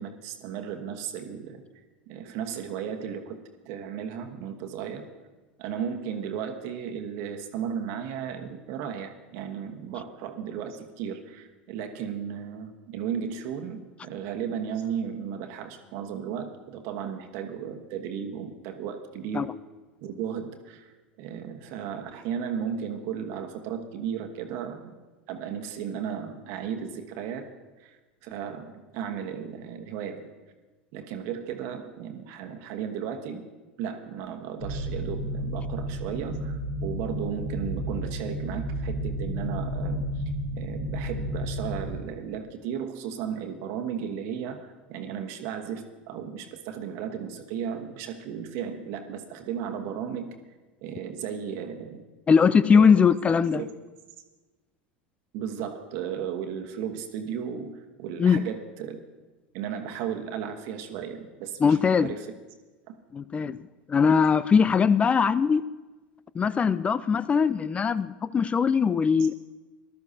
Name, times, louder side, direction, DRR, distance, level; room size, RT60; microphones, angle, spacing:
voice 1, 0.0-1.6 2.1-5.1 5.6-19.5 20.0-24.9 25.3-27.5 27.8-30.2 30.9-33.4 33.8-40.2 40.5-50.3 50.8-52.0 52.7-53.1 53.5-53.7 55.3-59.0 59.5-62.3, right 8 dB, 55° right, 5 dB, 1.2 m, -35 dB
sound 1, 34.6-42.0, equal, 55° left, 5.1 m, -32 dB
voice 2, 52.3-53.6 58.2-58.4 61.6-62.1 63.1-65.6 66.3-69.3, left 6 dB, 20° left, 17 dB, 0.4 m, -21 dB
19.0 x 12.5 x 2.8 m, 1.2 s
hypercardioid pair, 80°, 5 cm